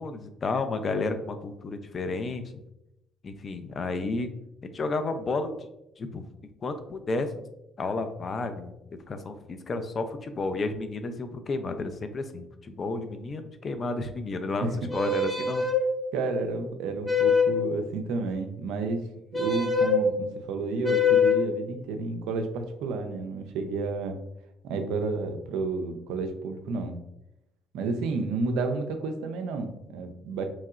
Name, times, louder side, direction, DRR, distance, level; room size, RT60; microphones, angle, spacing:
voice 1, 0.0-2.6 3.2-4.3 4.6-5.6 6.0-6.2 6.6-7.5 7.8-8.7 9.1-15.7, left 3 dB, 45° left, 8 dB, 0.3 m, -31 dB
voice 2, 14.6-14.9 16.1-19.1 19.3-24.2 24.6-27.0 27.7-30.5, right 3 dB, 70° right, 6 dB, 0.3 m, -31 dB
sound 1, 14.9-15.8 17.0-17.6 19.3-20.0 20.8-21.5, left 6 dB, 5° left, 0.7 m, -23 dB
2.9 x 2.7 x 2.3 m, 0.86 s
hypercardioid pair, 50°, 0 cm